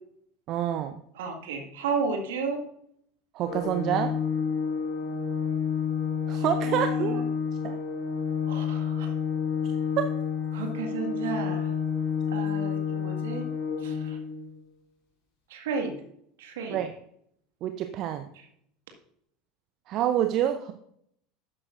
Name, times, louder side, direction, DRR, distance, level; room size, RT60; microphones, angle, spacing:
voice 1, 0.5-1.0 3.3-4.1 6.3-7.2 7.6-7.8 16.7-16.9 17.6-18.3 19.9-20.7, right 11 dB, 45° right, 8 dB, 0.6 m, -27 dB
voice 2, 1.2-2.6 6.3-7.2 8.5-9.1 10.5-11.7 12.3-13.4 13.8-14.2 15.5-15.9 16.4-16.8, right 5 dB, 65° right, 3 dB, 1.8 m, -33 dB
Organ, 3.5-14.4, left 7 dB, 55° left, 3.2 m, -29 dB
12.5 x 8.8 x 2.6 m, 0.70 s
figure-of-eight pair, 75°, 0 cm